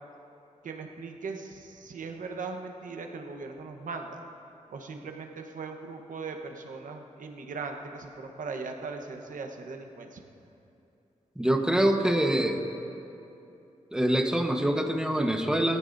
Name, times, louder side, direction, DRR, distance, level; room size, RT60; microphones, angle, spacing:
voice 1, 0.6-4.2 4.7-10.2, right 4 dB, 90° right, 4 dB, 1.1 m, -39 dB
voice 2, 11.4-12.7 13.9-15.8, right 1 dB, 5° right, 3 dB, 1.2 m, -25 dB
21.5 x 14.5 x 2.7 m, 2.8 s
wide cardioid pair, 85°, 13 cm